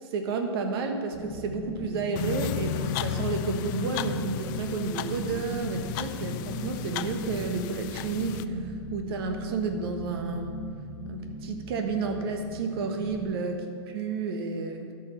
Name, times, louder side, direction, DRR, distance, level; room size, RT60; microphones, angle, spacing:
voice 1, 0.0-10.5 11.1-14.9, right 4 dB, 60° right, 4 dB, 1.4 m, -31 dB
sound 1, 1.1-13.3, right 2 dB, 5° left, 2.2 m, -37 dB
sound 2, 2.2-8.4, left 13 dB, 45° left, 0.4 m, -34 dB
12.5 x 5.5 x 6.8 m, 2.3 s
hypercardioid pair, 110°, 14 cm